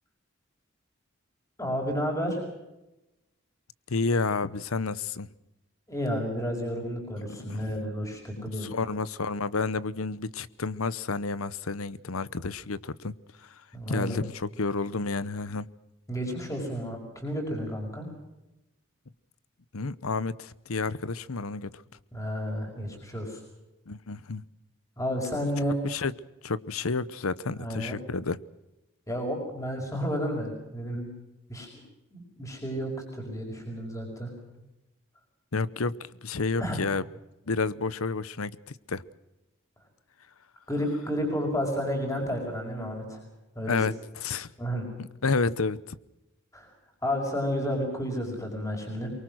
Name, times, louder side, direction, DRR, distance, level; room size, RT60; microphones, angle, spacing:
voice 1, 1.6-2.4 5.9-8.7 13.7-14.2 16.1-18.1 22.1-23.4 25.0-25.8 27.5-28.0 29.1-31.1 31.5-31.7 32.1-34.3 36.6-36.8 40.7-43.2 43.6-43.9 44.6-44.9 46.5-46.7 47.0-49.1, equal, 15° left, 5.5 m, -31 dB
voice 2, 3.9-5.3 7.4-7.7 8.4-13.1 13.9-15.7 19.7-21.8 23.9-24.4 25.8-26.1 26.4-28.4 35.5-37.0 37.5-38.5 38.9-39.0 43.7-44.5 45.0-46.0, left 4 dB, 85° left, 0.9 m, -30 dB
24.0 x 23.5 x 6.3 m
head